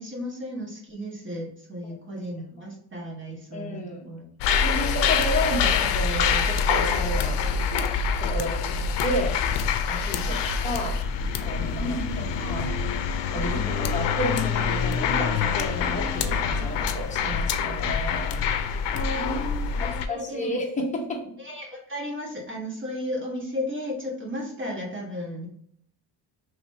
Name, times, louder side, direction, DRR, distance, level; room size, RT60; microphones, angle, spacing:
voice 1, 0.0-4.3 10.3-10.4 11.8-12.3 13.3-13.7 19.1-20.5 21.4-25.5, left 1 dB, 25° right, -2 dB, 1.4 m, -34 dB
voice 2, 3.5-4.1 4.6-7.4 8.2-8.6 9.0-9.4 9.9-11.0 11.4-12.0 12.4-12.7 13.3-18.4 18.9-19.3 19.8-21.2, left 1 dB, 15° left, -1 dB, 0.9 m, -31 dB
sound 1, 4.4-20.1, left 6 dB, 75° left, 0.6 m, -25 dB
Wind instrument woodwind instrument, 12.1-18.6, right 1 dB, 80° right, 1.7 m, -43 dB
4.8 x 3.2 x 2.7 m, 0.67 s
cardioid pair, 165°, 43 cm